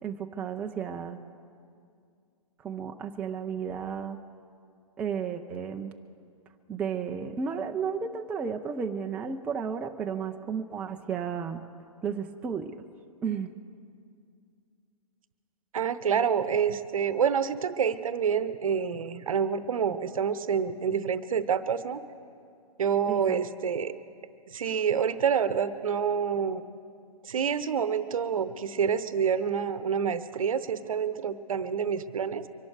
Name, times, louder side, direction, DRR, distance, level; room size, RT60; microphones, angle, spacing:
voice 1, 0.0-1.2 2.6-4.2 5.0-6.0 6.7-11.7 12.0-12.8 13.2-13.5 23.1-23.4, right 6 dB, 5° right, 4 dB, 0.3 m, -33 dB
voice 2, 15.7-22.0 22.8-23.9 24.5-26.6 27.2-32.5, right 7 dB, 65° right, 14 dB, 0.8 m, -27 dB
24.0 x 11.5 x 4.7 m, 2.3 s
figure-of-eight pair, 120°, 19 cm